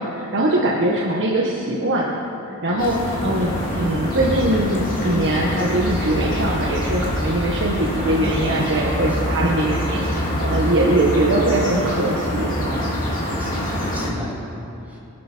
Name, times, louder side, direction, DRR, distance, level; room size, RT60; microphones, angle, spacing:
voice 1, 0.0-2.2 2.5-12.8, right 1 dB, 55° right, -3 dB, 1.5 m, -22 dB
sound 1, 2.8-14.1, equal, 40° left, 3.0 m, -25 dB
voice 2, 13.0-15.0, left 1 dB, 10° right, -7 dB, 3.8 m, -36 dB
24.0 x 12.5 x 4.6 m, 2.9 s
head